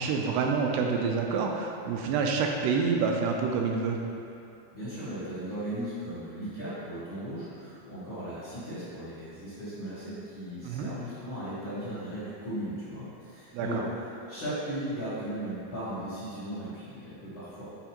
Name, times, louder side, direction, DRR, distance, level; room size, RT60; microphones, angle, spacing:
voice 1, 0.0-4.0 10.6-10.9 13.5-13.8, right 5 dB, 85° right, 1 dB, 2.5 m, -27 dB
voice 2, 4.7-13.8 14.3-17.7, right 1 dB, 80° left, -15 dB, 1.1 m, -37 dB
7.9 x 4.3 x 2.9 m, 2.6 s
omnidirectional pair, 4.9 m